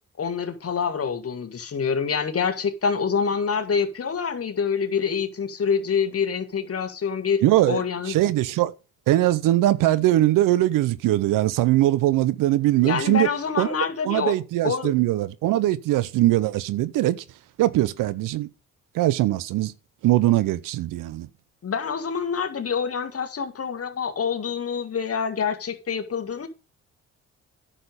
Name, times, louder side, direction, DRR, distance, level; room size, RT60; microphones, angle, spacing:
voice 1, 0.2-8.2 12.8-14.3 14.6-14.9 21.6-26.5, left 6 dB, 45° left, 2.0 m, -26 dB
voice 2, 7.4-8.7 9.1-13.3 13.6-13.7 14.1-17.2 17.6-18.5 18.9-19.7 20.0-21.3, right 15 dB, 80° right, 0.7 m, -21 dB
9.9 x 6.8 x 5.1 m
supercardioid pair, 65°, 32 cm